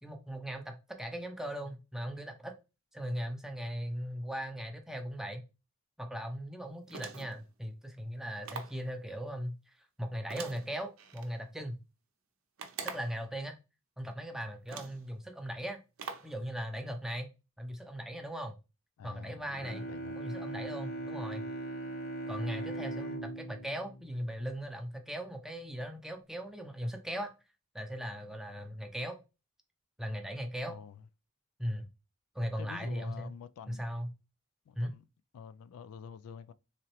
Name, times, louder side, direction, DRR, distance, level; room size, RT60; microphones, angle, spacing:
voice 1, 0.0-2.5 2.9-5.4 6.0-11.8 12.8-13.5 14.0-15.8 16.2-17.3 17.6-18.5 19.0-19.9 20.1-21.5 22.3-27.3 27.7-29.2 30.0-30.8 31.6-31.9 32.3-33.3 33.7-34.1 34.7-35.0, equal, ahead, 0.5 m, -38 dB
sound 1, 6.9-7.5 8.4-8.8 10.3-11.3 12.6-13.2 14.1-14.2 14.7-15.1 16.0-16.4, right 5 dB, 70° right, 0.6 m, -43 dB
voice 2, 19.0-19.5 19.9-20.2 30.7-31.0 32.6-33.9 34.7-35.0 35.3-36.5, left 7 dB, 85° left, 0.3 m, -48 dB
Bowed string instrument, 19.5-25.1, right 1 dB, 50° left, 0.8 m, -40 dB
3.7 x 3.0 x 3.0 m
head